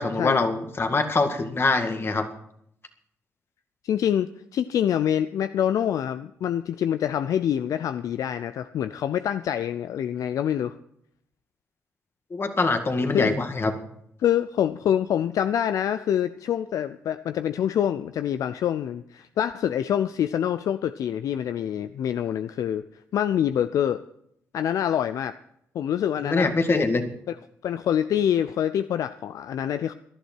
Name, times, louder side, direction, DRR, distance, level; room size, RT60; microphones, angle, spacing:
voice 1, 0.0-2.3 12.3-13.7 26.2-27.0, left 3 dB, 40° left, 6 dB, 2.0 m, -24 dB
voice 2, 3.8-10.8 13.1-13.4 14.2-22.8 23.1-24.0 24.5-25.3 25.7-26.8 27.3-27.4 27.6-29.9, left 10 dB, 70° left, 12 dB, 0.4 m, -26 dB
18.0 x 11.5 x 4.5 m, 0.74 s
supercardioid pair, 55°, 6 cm